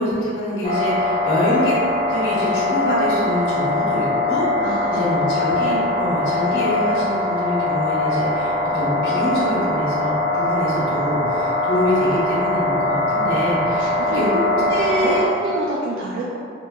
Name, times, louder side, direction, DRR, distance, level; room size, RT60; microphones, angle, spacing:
voice 1, 0.0-1.8 2.1-4.5 4.9-14.4 14.7-15.3, equal, 60° left, -9 dB, 0.7 m, -25 dB
sound 1, 0.6-15.3, left 2 dB, 35° left, 0.3 m, -21 dB
voice 2, 4.6-5.0 13.8-14.2 14.6-16.4, right 2 dB, 75° right, -3 dB, 0.3 m, -27 dB
2.9 x 2.6 x 2.2 m, 2.4 s
head